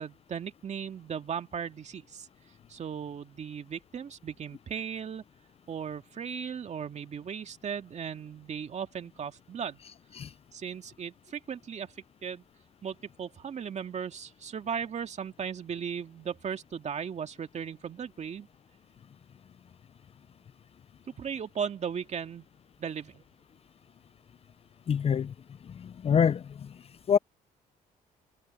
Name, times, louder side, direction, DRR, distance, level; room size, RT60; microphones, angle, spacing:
voice 1, 0.0-2.3 2.7-5.2 5.7-9.8 10.5-11.9 12.2-12.4 12.8-18.5 21.2-22.5 22.8-23.2, right 7 dB, 45° right, 2.0 m, -37 dB
voice 2, 24.9-25.3 25.6-26.7 27.1-27.2, left 7 dB, 40° left, 0.5 m, -26 dB
cardioid pair, 95°, 16 cm